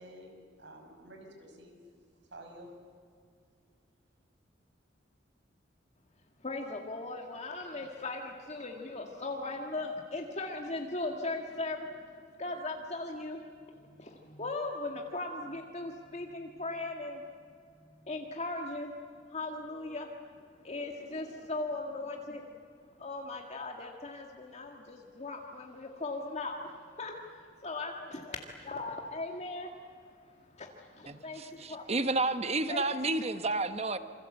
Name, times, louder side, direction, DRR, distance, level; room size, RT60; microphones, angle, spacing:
voice 1, 0.0-1.8 2.3-2.7, right 1 dB, 65° right, 4 dB, 5.7 m, -50 dB
voice 2, 6.4-18.9 19.3-20.1 20.6-22.5 23.0-31.9 32.7-32.8 33.1-33.2, left 2 dB, 35° left, 1 dB, 2.0 m, -39 dB
voice 3, 31.1-34.0, right 2 dB, 35° right, 10 dB, 1.2 m, -31 dB
27.5 x 25.5 x 8.0 m, 2.3 s
head